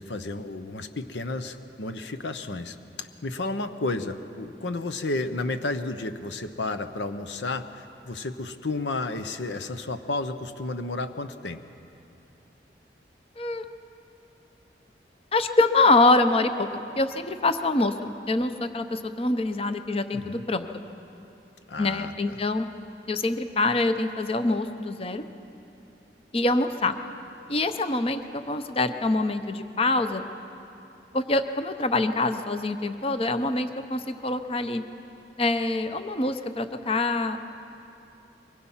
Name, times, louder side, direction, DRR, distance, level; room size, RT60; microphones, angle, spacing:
voice 1, 0.0-11.6 20.1-20.5 21.7-22.4, left 2 dB, 90° left, 9 dB, 0.9 m, -32 dB
voice 2, 15.3-16.7 17.0-20.7 21.8-22.7 23.1-25.3 26.3-26.9 27.5-30.2 31.1-34.8 35.4-37.4, left 2 dB, 35° left, 9 dB, 0.7 m, -25 dB
23.5 x 21.0 x 5.7 m, 2.8 s
head